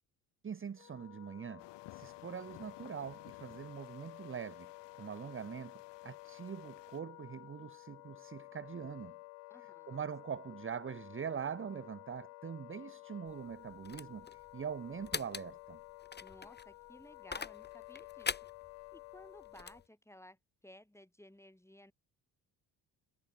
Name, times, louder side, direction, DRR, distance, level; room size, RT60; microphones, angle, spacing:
voice 1, 0.4-9.2 9.6-15.8, right 7 dB, 25° right, 0.8 m, -43 dB
Wind instrument woodwind instrument, 0.7-19.9, left 31 dB, 85° left, 1.2 m, -53 dB
sound 1, 1.6-7.0, left 16 dB, 65° left, 1.0 m, -58 dB
voice 2, 9.5-10.0 16.2-18.5 18.9-21.9, left 1 dB, 5° left, 5.6 m, -57 dB
sound 2, 13.3-19.8, left 5 dB, 20° left, 1.1 m, -44 dB
hypercardioid pair, 55°, 46 cm